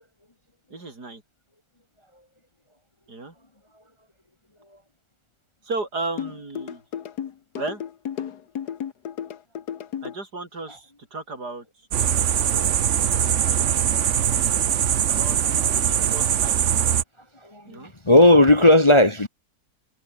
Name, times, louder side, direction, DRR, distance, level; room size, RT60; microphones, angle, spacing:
voice 1, 0.7-1.2 3.1-3.4 5.6-6.8 7.6-7.8 10.0-11.7 13.5-14.1 15.1-16.6 17.7-17.9, right 3 dB, 75° right, 5.2 m, -34 dB
sound 1, 6.2-10.2, left 9 dB, 75° left, 1.7 m, -33 dB
sound 2, 11.9-17.0, right 9 dB, 55° right, 1.1 m, -22 dB
voice 2, 13.6-14.0 14.3-14.4 17.4-19.3, left 1 dB, 20° left, 1.1 m, -17 dB
omnidirectional pair, 1.7 m